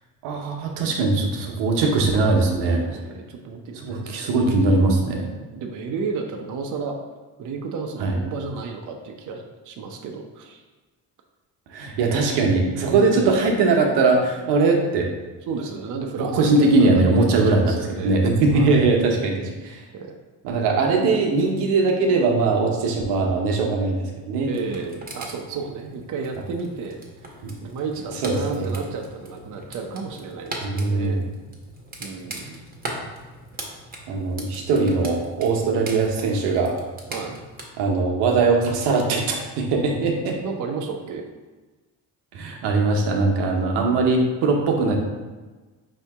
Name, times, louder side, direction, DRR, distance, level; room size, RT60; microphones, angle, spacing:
voice 1, 0.2-2.8 3.8-5.2 8.0-8.2 11.7-15.1 16.2-19.8 20.4-24.5 27.4-27.6 28.2-28.7 30.6-31.2 34.1-36.7 37.8-40.4 42.3-45.0, right 3 dB, 80° right, 1 dB, 0.9 m, -20 dB
voice 2, 2.7-4.5 5.0-7.0 7.4-10.6 12.9-13.5 15.5-18.2 18.5-18.9 19.9-20.2 24.5-27.0 27.6-31.3 32.0-32.6 37.1-37.4 40.4-41.3, right 4 dB, 50° right, 2 dB, 0.6 m, -33 dB
sound 1, 24.4-37.6, right 1 dB, 20° right, 1.0 m, -40 dB
5.1 x 2.8 x 3.4 m, 1.3 s
supercardioid pair, 80°, 41 cm